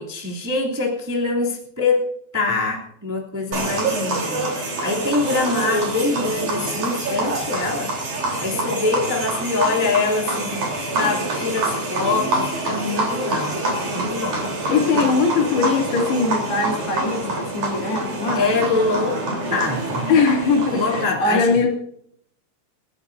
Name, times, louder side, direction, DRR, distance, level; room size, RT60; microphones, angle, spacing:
voice 1, 0.0-2.1 2.3-4.5 4.8-7.9 8.4-10.7 11.0-14.5 14.9-15.1 18.3-19.2 19.5-20.1 20.7-21.6, left 3 dB, 5° right, -3 dB, 1.8 m, -24 dB
sound 1, 3.5-21.0, right 2 dB, 50° right, 5.0 m, -26 dB
voice 2, 14.7-18.5 20.1-21.7, left 4 dB, 75° left, 0 dB, 4.8 m, -21 dB
29.0 x 11.0 x 2.7 m, 0.68 s
omnidirectional pair, 4.7 m